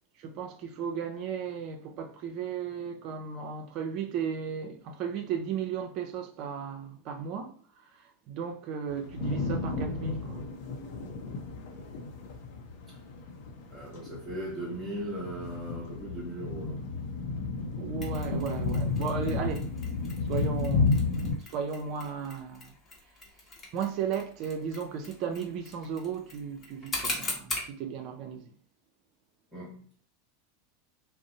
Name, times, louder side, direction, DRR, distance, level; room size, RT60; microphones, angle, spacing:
voice 1, 0.2-10.5 17.8-19.7 20.3-21.1 21.5-22.7 23.7-28.5, right 7 dB, 50° right, 0.5 m, -35 dB
sound 1, 8.9-21.4, left 3 dB, 60° left, 0.6 m, -32 dB
voice 2, 13.7-16.9 29.5-29.8, right 1 dB, ahead, 0.9 m, -38 dB
Mechanisms, 18.0-27.7, left 2 dB, 25° left, 0.9 m, -41 dB
2.5 x 2.0 x 2.7 m
hypercardioid pair, 90°, 0 cm